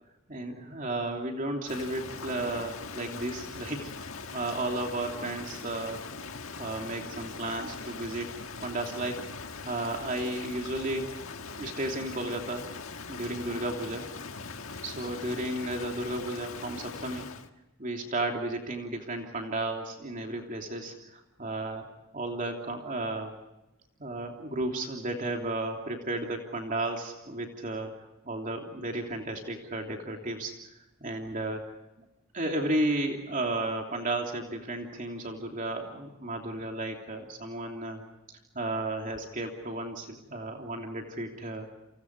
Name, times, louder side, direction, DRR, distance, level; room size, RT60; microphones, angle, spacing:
voice 1, 0.3-6.0 6.6-9.2 9.6-11.1 11.5-12.6 13.1-14.1 14.8-17.3 17.8-23.3 24.0-28.0 28.2-30.5 31.0-31.8 32.3-38.0 38.5-41.7, right 2 dB, 40° right, 2 dB, 3.1 m, -33 dB
Rain, 1.7-17.5, left 4 dB, 90° left, 1.7 m, -41 dB
30.0 x 28.0 x 4.7 m, 0.92 s
head